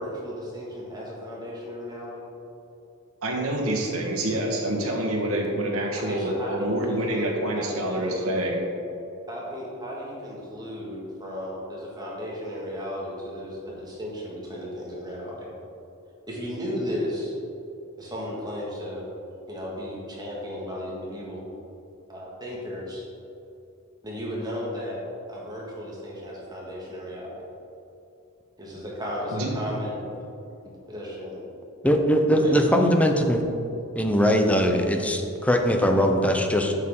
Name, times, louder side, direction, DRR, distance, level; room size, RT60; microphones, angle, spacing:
voice 1, 0.0-2.2 6.0-8.3 9.3-15.5 16.3-17.3 18.0-19.0 19.5-21.4 22.1-23.0 24.0-25.0 25.3-27.3 28.6-30.0 30.9-31.4 32.3-33.0, equal, 20° right, -5 dB, 1.7 m, -35 dB
voice 2, 3.2-8.6 29.3-29.5, right 1 dB, 80° right, -1 dB, 1.3 m, -27 dB
voice 3, 31.8-33.4 34.0-36.7, equal, 5° left, 4 dB, 0.5 m, -21 dB
8.3 x 6.6 x 3.7 m, 2.8 s
head